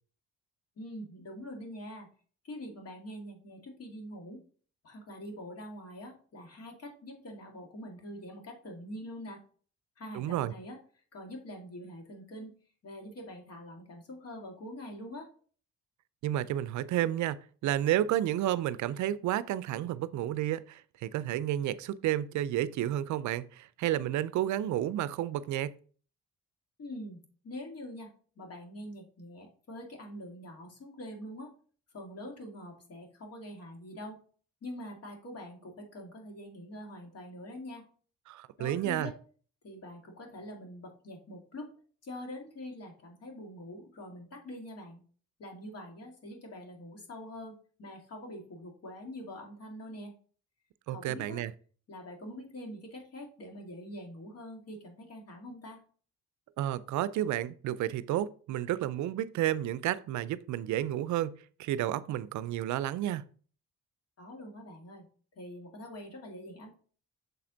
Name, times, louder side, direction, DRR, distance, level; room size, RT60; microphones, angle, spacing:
voice 1, 0.8-2.1 2.4-4.4 4.8-9.4 10.0-10.8 11.1-12.5 12.8-15.3 26.8-31.5 31.9-34.2 34.6-37.9 38.6-39.1 39.6-41.7 42.0-45.0 45.4-50.1 50.9-51.4 51.9-55.8 64.2-65.0 65.3-66.8, left 1 dB, 55° left, 2.1 m, -44 dB
voice 2, 10.1-10.5 16.2-25.7 38.3-39.1 50.9-51.5 56.6-63.2, right 12 dB, 70° right, 0.5 m, -31 dB
6.7 x 4.2 x 3.8 m
cardioid pair, 90°, 30 cm